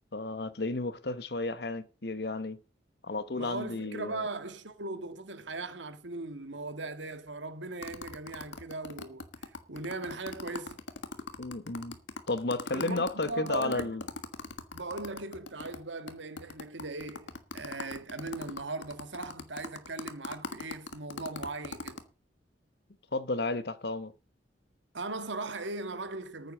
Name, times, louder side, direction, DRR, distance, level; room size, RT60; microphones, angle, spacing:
voice 1, 0.1-2.6 3.0-4.3 11.4-12.0 12.3-14.0 23.1-24.1, left 2 dB, 60° left, 1.1 m, -33 dB
voice 2, 3.3-10.8 12.7-13.9 14.7-22.0 24.9-26.5, right 3 dB, 85° right, 1.7 m, -39 dB
sound 1, 7.8-15.8 16.1-16.2 16.4-22.0, left 3 dB, 90° left, 1.6 m, -40 dB
9.5 x 8.3 x 7.3 m
head